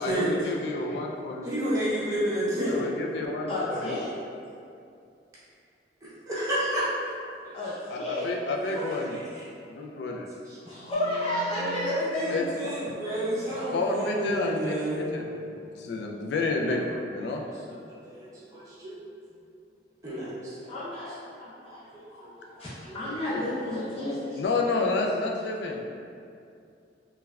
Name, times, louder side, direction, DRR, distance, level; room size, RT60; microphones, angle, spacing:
voice 1, 0.0-1.5 2.7-4.0 7.9-9.2 9.7-10.3 12.3-12.9 13.7-15.3 15.6-17.4 24.3-25.8, left 3 dB, 70° left, 1 dB, 0.3 m, -30 dB
voice 2, 1.4-2.8 6.0-6.9 7.4-7.6 8.7-9.4 10.4-10.8 11.5-15.1 17.4-17.5 18.0-19.0 20.0-20.6 21.6-23.0, right 1 dB, 20° right, -11 dB, 0.6 m, -31 dB
voice 3, 3.5-4.1 7.5-8.2 10.6-12.3 20.7-21.1 21.4-21.8 22.1-22.3 22.6-24.2, left 1 dB, 35° left, -11 dB, 0.9 m, -31 dB
sound 1, 10.7-18.6, right 3 dB, 80° right, 0.3 m, -47 dB
3.1 x 2.2 x 2.3 m, 2.5 s
head